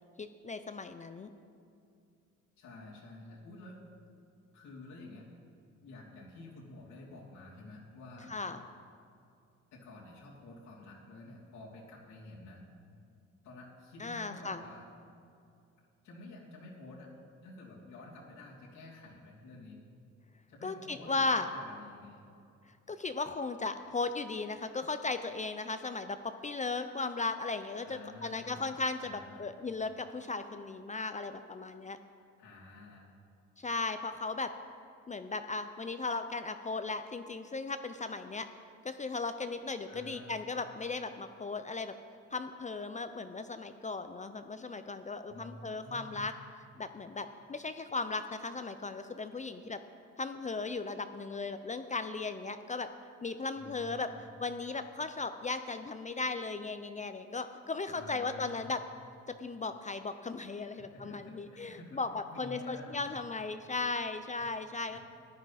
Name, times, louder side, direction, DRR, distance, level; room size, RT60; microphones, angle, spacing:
voice 1, 0.2-1.3 8.3-8.6 14.0-14.6 20.6-21.5 22.9-32.0 33.6-34.5 35.1-38.5 38.8-41.9 42.3-46.3 46.8-49.8 50.2-52.9 53.2-54.1 54.4-58.8 59.4-65.0, left 3 dB, 25° left, 9 dB, 0.5 m, -36 dB
voice 2, 2.6-3.8 4.5-5.3 5.8-8.3 9.7-12.6 13.4-14.9 16.0-17.1 17.4-19.8 20.5-22.3 27.8-28.7 29.0-29.4 32.4-33.1 39.9-40.4 45.3-46.3 53.5-54.2 57.9-58.6 60.7-62.0 62.3-63.2 64.4-64.5 64.9-65.0, left 2 dB, 90° left, -6 dB, 2.8 m, -50 dB
14.5 x 10.0 x 4.2 m, 2.5 s
cardioid pair, 90°, 30 cm